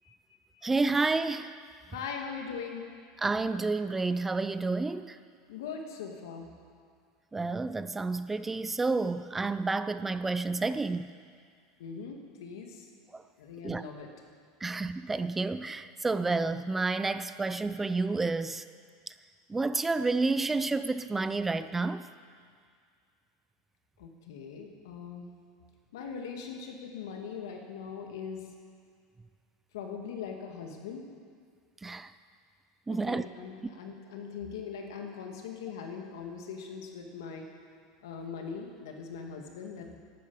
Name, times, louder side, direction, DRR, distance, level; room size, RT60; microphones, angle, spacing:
voice 1, 0.6-1.5 3.2-5.2 7.3-11.1 13.1-13.2 13.6-13.8 14.6-18.6 19.5-22.0 31.8-32.1 32.9-33.3, right 3 dB, 10° right, 13 dB, 0.4 m, -30 dB
voice 2, 1.9-2.8 5.5-6.5 11.8-12.9 13.4-14.1 24.0-25.3 25.9-28.4 29.7-31.1 32.9-37.5 38.0-40.0, left 6 dB, 90° left, 3 dB, 2.1 m, -41 dB
12.0 x 9.5 x 8.6 m, 2.1 s
supercardioid pair, 140°, 2 cm